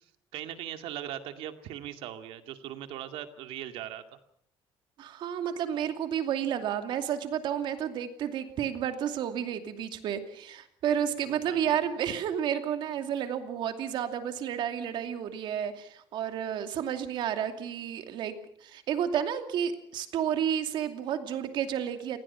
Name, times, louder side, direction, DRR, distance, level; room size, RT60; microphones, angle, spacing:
voice 1, 0.3-4.0 11.3-11.8, right 11 dB, 75° right, 7 dB, 2.3 m, -39 dB
voice 2, 5.0-22.2, right 9 dB, 55° right, 7 dB, 2.6 m, -31 dB
28.5 x 20.0 x 5.9 m, 0.67 s
cardioid pair, 170°, 10 cm